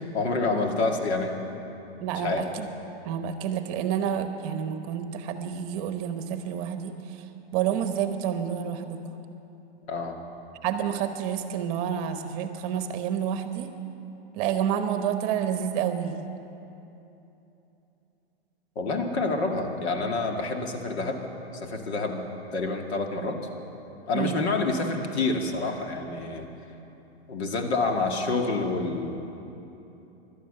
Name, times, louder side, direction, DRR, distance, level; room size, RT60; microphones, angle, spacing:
voice 1, 0.0-1.4 2.1-2.5 9.9-10.2 18.8-21.2 21.5-22.2 22.5-23.4 24.1-26.5 27.3-29.1, left 3 dB, 75° left, 3 dB, 2.2 m, -28 dB
voice 2, 2.0-2.7 3.0-6.9 7.5-9.0 10.6-13.7 14.3-16.2 24.1-24.4, right 9 dB, 35° right, 8 dB, 1.0 m, -29 dB
17.0 x 12.0 x 6.7 m, 2.9 s
hypercardioid pair, 145°, 33 cm